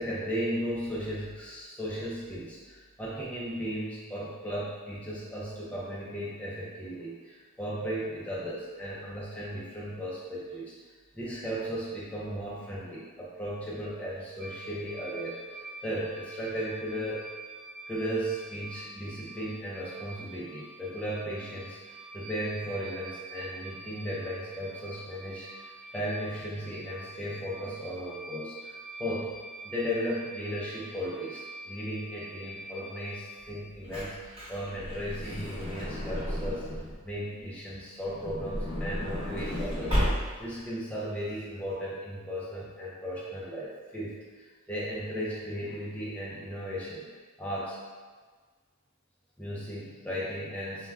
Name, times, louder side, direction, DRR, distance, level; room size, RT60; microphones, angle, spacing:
voice 1, 0.0-17.3 17.9-28.7 29.0-29.3 29.6-40.0 40.4-47.1 47.4-47.8 49.4-50.9, equal, 5° left, -8 dB, 0.4 m, -36 dB
sound 1, 14.4-33.5, right 2 dB, 65° right, 0.6 m, -46 dB
Truck / Door, 33.5-37.0 38.0-40.6 41.3-41.4 41.6-41.7, equal, 25° right, 1.1 m, -33 dB
2.2 x 2.2 x 3.4 m, 1.4 s
head